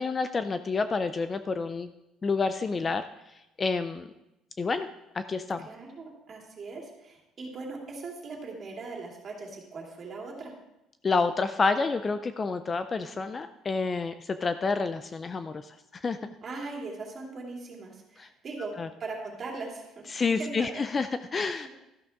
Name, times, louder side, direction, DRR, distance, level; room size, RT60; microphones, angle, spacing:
voice 1, 0.0-1.9 2.2-3.0 3.6-4.1 4.6-4.9 5.1-5.7 11.0-16.3 18.2-18.3 18.8-18.9 20.1-21.7, left 4 dB, 25° left, 10 dB, 0.4 m, -29 dB
voice 2, 5.6-10.5 16.4-18.7 19.0-20.8, right 3 dB, 35° right, -1 dB, 2.7 m, -40 dB
13.0 x 11.5 x 3.6 m, 0.93 s
cardioid pair, 155°, 0 cm